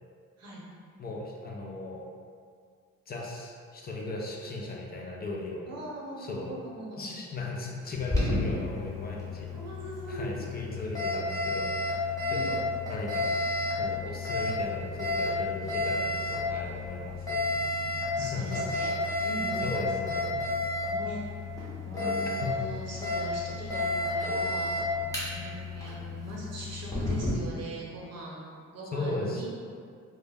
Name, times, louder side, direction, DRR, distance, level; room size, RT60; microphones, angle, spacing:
voice 1, 1.0-2.0 3.1-5.7 6.2-6.5 7.0-9.5 10.1-12.6 12.9-13.3 13.8-17.4 18.2-18.7 19.2-19.3 19.6-20.4 22.4-22.5 28.9-29.5, left 2 dB, 30° left, -2 dB, 0.4 m, -37 dB
voice 2, 5.7-7.1 9.5-10.5 12.3-12.5 18.1-18.9 19.2-19.6 20.0-20.3 20.8-21.2 21.7-24.7 25.2-28.4 28.7-29.5, right 1 dB, 60° right, -4 dB, 0.7 m, -40 dB
Alarm, 7.9-27.3, left 2 dB, 10° left, 0.8 m, -31 dB
2.2 x 2.0 x 3.3 m, 2.2 s
cardioid pair, 90°, 30 cm